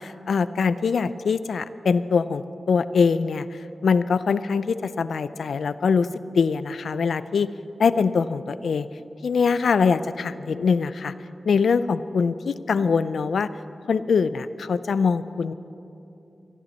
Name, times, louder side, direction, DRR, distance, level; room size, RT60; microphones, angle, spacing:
voice 1, 0.0-3.5 3.8-7.5 7.8-8.9 9.2-11.1 11.5-13.5 13.9-15.5, left 5 dB, 85° left, 14 dB, 0.4 m, -23 dB
25.5 x 11.0 x 4.2 m, 2.8 s
cardioid pair, 40°, 0 cm